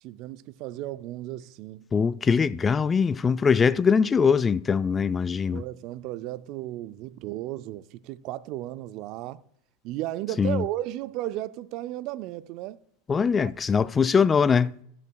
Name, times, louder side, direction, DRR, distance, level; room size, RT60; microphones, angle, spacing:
voice 1, 0.0-1.9 5.5-9.4 9.8-12.8 13.2-13.5, right 15 dB, 50° right, 0.4 m, -34 dB
voice 2, 1.9-5.6 10.4-10.6 13.1-14.7, left 6 dB, 25° left, 0.3 m, -22 dB
14.5 x 11.0 x 2.3 m
hypercardioid pair, 85°, 0 cm